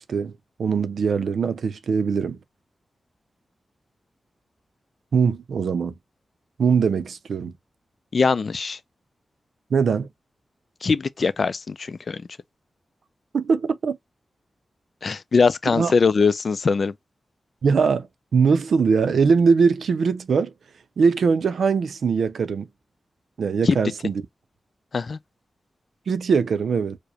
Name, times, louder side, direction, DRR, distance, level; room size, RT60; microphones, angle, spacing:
voice 1, 0.6-2.4 5.1-5.9 6.6-7.5 9.7-10.1 13.3-14.0 15.7-15.9 17.6-18.1 18.3-20.5 21.0-22.7 23.4-24.1 26.1-27.0, right 5 dB, 85° right, 0.5 m, -21 dB
voice 2, 8.1-8.8 10.8-12.2 15.0-16.9 23.7-23.8 24.9-25.2, left 4 dB, 55° left, 0.4 m, -21 dB
4.8 x 2.1 x 2.8 m
wide cardioid pair, 95°, 0 cm